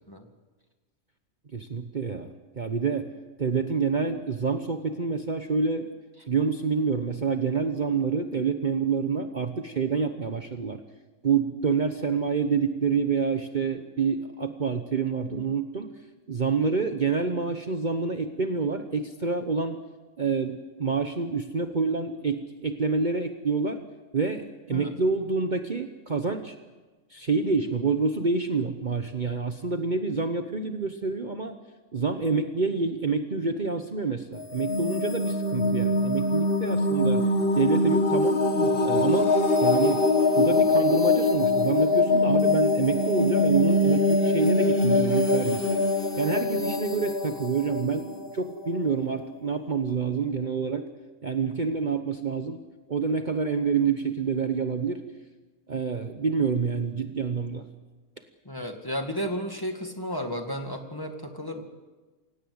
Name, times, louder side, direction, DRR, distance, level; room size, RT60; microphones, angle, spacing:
voice 1, 1.5-3.1 3.4-5.9 6.3-10.8 11.2-15.9 16.3-19.8 20.2-23.8 24.1-26.5 27.1-31.6 31.9-37.3 37.6-38.4 38.8-39.4 39.6-40.1 40.3-45.8 46.2-50.9 51.2-52.6 52.9-55.0 55.7-57.6, right 5 dB, 35° right, 7 dB, 1.1 m, -27 dB
sound 1, 34.4-49.0, left 2 dB, 45° left, 1.6 m, -23 dB
voice 2, 58.5-61.6, equal, 15° left, 4 dB, 2.1 m, -33 dB
27.5 x 17.5 x 8.0 m, 1.3 s
omnidirectional pair, 1.4 m